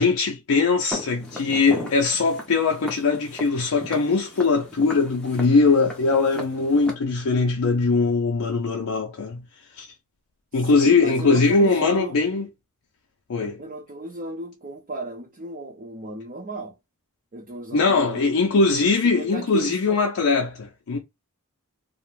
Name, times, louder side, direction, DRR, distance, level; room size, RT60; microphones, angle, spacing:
voice 1, 0.0-9.4 9.8-9.9 10.5-12.5 13.3-13.6 17.7-21.0, left 4 dB, 65° left, 0.5 m, -21 dB
Walk footsteps, 0.9-6.9, left 2 dB, 5° left, 0.6 m, -37 dB
voice 2, 10.6-12.2 13.6-16.8 17.3-18.4 19.1-20.0, right 1 dB, 35° right, 0.5 m, -34 dB
2.4 x 2.1 x 3.0 m
head